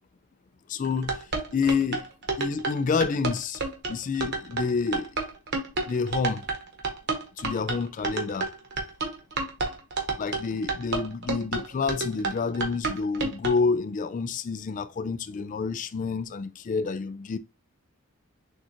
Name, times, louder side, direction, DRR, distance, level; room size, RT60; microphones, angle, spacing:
voice 1, 0.7-1.2 1.5-2.1 2.4-3.6 3.9-5.1 5.9-6.4 7.4-8.5 10.2-17.4, left 5 dB, 35° left, 0.3 m, -28 dB
sound 1, 0.8-13.6, right 3 dB, 50° right, 1.1 m, -30 dB
6.3 x 2.4 x 3.0 m
head